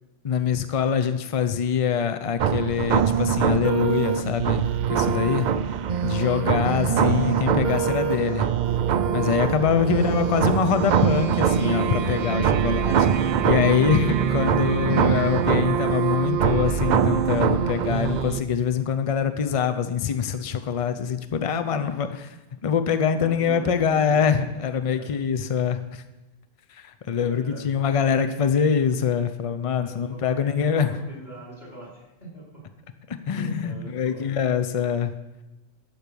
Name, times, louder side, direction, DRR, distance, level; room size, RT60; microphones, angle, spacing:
voice 1, 0.2-5.5 6.0-8.5 9.1-22.4 22.6-26.0 26.7-30.9 33.1-35.1, left 7 dB, 60° left, 9 dB, 0.3 m, -24 dB
sound 1, 2.4-18.4, right 7 dB, 70° right, 0.4 m, -23 dB
voice 2, 21.7-22.2 23.1-24.4 24.9-25.1 27.1-28.2 29.8-32.6 33.3-34.4, right 1 dB, 35° left, -5 dB, 4.2 m, -42 dB
12.0 x 4.5 x 6.9 m, 1.0 s
omnidirectional pair, 1.3 m